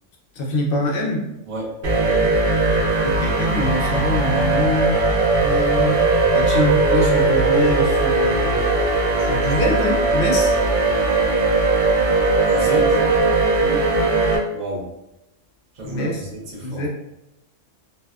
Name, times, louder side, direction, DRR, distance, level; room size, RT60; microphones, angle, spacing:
voice 1, 0.3-1.3 3.0-5.0 5.4-6.1 6.3-8.6 9.2-10.6 13.6-13.8 15.8-16.2 16.6-16.9, equal, 60° left, -1 dB, 0.7 m, -24 dB
voice 2, 1.5-1.8 12.4-13.0 14.5-14.9 15.7-16.9, right 1 dB, 85° right, -4 dB, 1.0 m, -30 dB
sound 1, 1.8-14.4, right 3 dB, 55° right, 0.5 m, -19 dB
2.6 x 2.2 x 2.2 m, 0.90 s
omnidirectional pair, 1.2 m